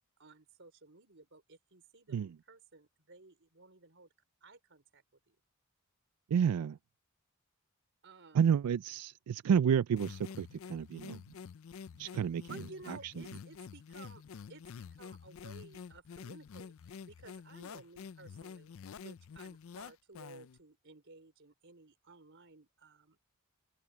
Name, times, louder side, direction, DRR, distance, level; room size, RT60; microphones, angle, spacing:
voice 1, 0.0-4.1 4.4-5.4 8.0-8.5 12.4-14.2 14.5-23.2, right 3 dB, 55° right, 4.2 m, -55 dB
voice 2, 6.3-6.8 8.3-11.2 12.0-12.4, right 7 dB, 90° right, 0.3 m, -30 dB
sound 1, 10.0-20.6, left 6 dB, 60° left, 0.4 m, -48 dB
open air
head